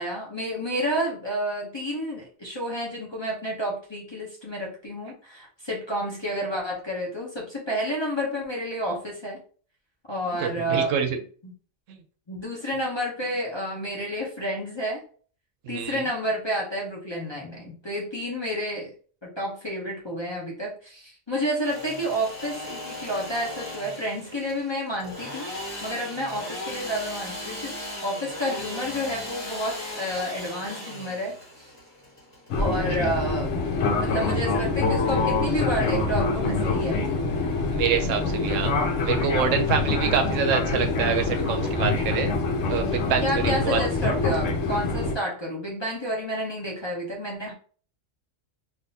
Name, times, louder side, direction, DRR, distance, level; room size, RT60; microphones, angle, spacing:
voice 1, 0.0-9.4 10.1-11.5 12.3-15.0 15.7-18.9 19.2-25.4 25.8-31.7 32.6-33.5 33.9-37.2 43.2-47.5, equal, 25° left, -4 dB, 0.7 m, -30 dB
voice 2, 10.4-11.2 11.9-12.0 15.7-16.0 37.7-38.7 39.0-42.3 42.7-43.8, right 7 dB, 80° right, 7 dB, 0.9 m, -26 dB
Engine / Sawing, 21.4-33.1, left 1 dB, 10° right, 1.5 m, -37 dB
Fixed-wing aircraft airplane, 32.5-45.1, left 3 dB, 75° left, 1.0 m, -25 dB
3.5 x 2.5 x 2.7 m, 0.43 s
omnidirectional pair, 1.3 m